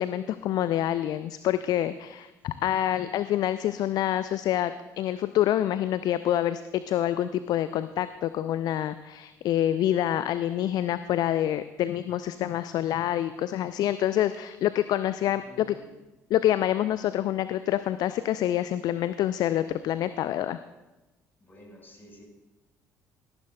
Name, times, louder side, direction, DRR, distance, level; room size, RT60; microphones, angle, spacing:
voice 1, 0.0-15.7 16.3-20.6, left 12 dB, 50° left, 13 dB, 0.4 m, -27 dB
voice 2, 15.2-15.8 21.4-22.2, equal, 25° left, -1 dB, 4.7 m, -50 dB
17.5 x 14.5 x 2.3 m, 1.1 s
figure-of-eight pair, 50°, 9 cm